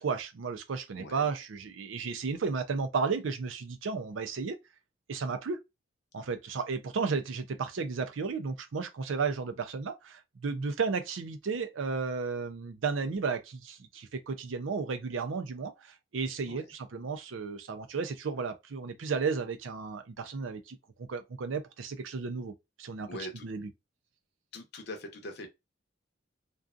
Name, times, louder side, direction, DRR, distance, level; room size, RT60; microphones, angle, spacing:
voice 1, 0.0-4.6 5.1-5.6 6.1-22.5 22.8-23.1 23.4-23.7, right 5 dB, 90° right, 0.5 m, -33 dB
voice 2, 0.9-1.3 16.4-16.7 23.1-23.5 24.5-25.5, left 1 dB, 60° left, 0.7 m, -42 dB
2.6 x 2.3 x 2.4 m
head